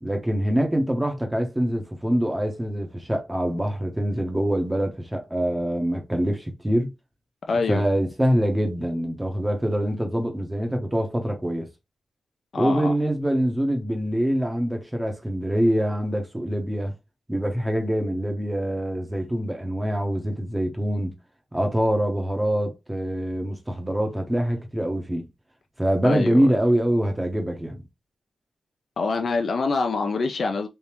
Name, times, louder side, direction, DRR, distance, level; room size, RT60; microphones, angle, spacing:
voice 1, 0.0-6.9 7.7-11.7 12.5-16.9 17.3-21.1 21.5-25.3 25.8-27.8, equal, 10° right, 0.8 m, -24 dB
voice 2, 7.5-7.8 12.5-12.9 26.0-26.6 29.0-30.7, left 4 dB, 55° left, 0.5 m, -25 dB
3.4 x 2.7 x 2.9 m
wide cardioid pair, 105°, 0 cm